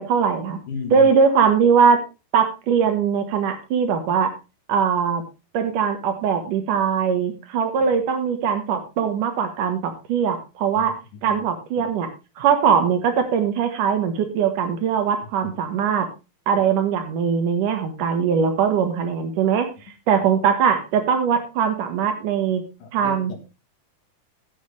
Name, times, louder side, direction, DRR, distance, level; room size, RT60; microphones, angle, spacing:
voice 1, 0.0-0.6 0.9-2.0 2.3-4.3 4.7-5.2 5.5-12.1 12.4-16.1 16.5-19.7 20.1-22.6 22.9-23.3, right 6 dB, 70° right, 2.8 m, -21 dB
voice 2, 0.7-1.1 7.8-7.9 10.8-10.9 11.1-11.4 11.8-11.9 15.4-15.5 16.6-16.7 22.8-23.4, left 5 dB, 70° left, 3.1 m, -35 dB
14.5 x 7.6 x 3.3 m
omnidirectional pair, 4.0 m